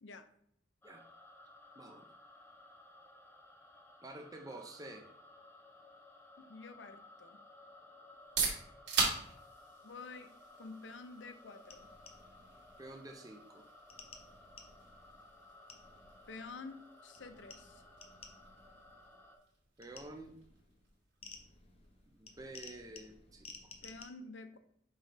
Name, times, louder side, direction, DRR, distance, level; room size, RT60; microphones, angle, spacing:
sound 1, 0.8-19.4, left 2 dB, 15° left, 1.0 m, -58 dB
voice 1, 4.0-5.1 12.8-13.6 19.8-20.4 22.2-23.7, right 2 dB, 20° right, 3 dB, 0.6 m, -49 dB
voice 2, 6.4-7.4 9.8-11.9 16.3-17.8 23.8-24.6, left 3 dB, 85° left, 10 dB, 0.7 m, -49 dB
sound 2, 8.1-23.7, right 4 dB, 80° right, 3.0 m, -43 dB
sound 3, 11.7-13.1 13.9-16.7 17.1-19.3 19.8-24.0, left 4 dB, 35° left, 0.9 m, -56 dB
7.6 x 3.3 x 5.0 m, 0.70 s
head